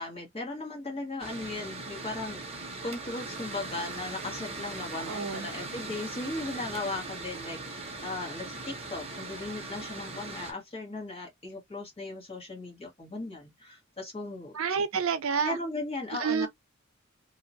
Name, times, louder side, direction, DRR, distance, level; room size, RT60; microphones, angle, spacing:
voice 1, 0.0-14.6 15.4-16.5, left 2 dB, 30° left, 1.5 m, -37 dB
Mechanical fan, 1.2-10.5, right 3 dB, 30° right, 0.9 m, -40 dB
voice 2, 5.1-5.5 14.5-15.6 16.2-16.5, right 6 dB, 70° right, 0.5 m, -29 dB
2.8 x 2.4 x 2.7 m
head